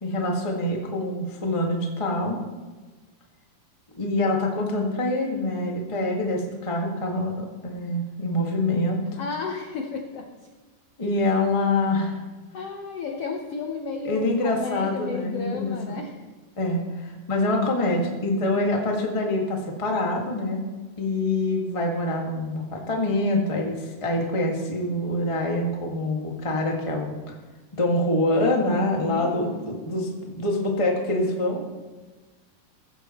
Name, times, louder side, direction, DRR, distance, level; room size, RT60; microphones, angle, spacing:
voice 1, 0.0-2.4 4.0-9.0 11.0-12.2 14.0-15.7 16.6-20.6 21.0-27.1 27.7-31.6, left 1 dB, 30° left, 0 dB, 0.5 m, -25 dB
voice 2, 9.2-10.3 12.5-16.1 29.1-29.8, left 5 dB, 80° left, 3 dB, 1.3 m, -33 dB
15.5 x 15.0 x 3.1 m, 1.3 s
omnidirectional pair, 4.2 m